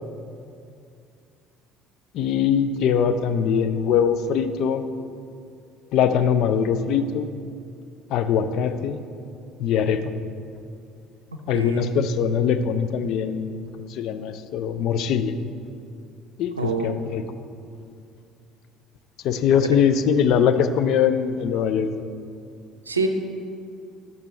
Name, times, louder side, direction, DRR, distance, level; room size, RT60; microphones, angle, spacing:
voice 1, 2.1-4.8 5.9-7.3 8.1-9.0 9.6-10.1 11.5-15.3 16.4-17.2 19.2-21.9, left 7 dB, 55° left, 10 dB, 0.4 m, -22 dB
voice 2, 11.5-12.0 16.5-17.0 22.9-23.1, right 3 dB, 85° right, 5 dB, 0.5 m, -26 dB
10.5 x 6.8 x 3.3 m, 2.4 s
figure-of-eight pair, 55°, 0 cm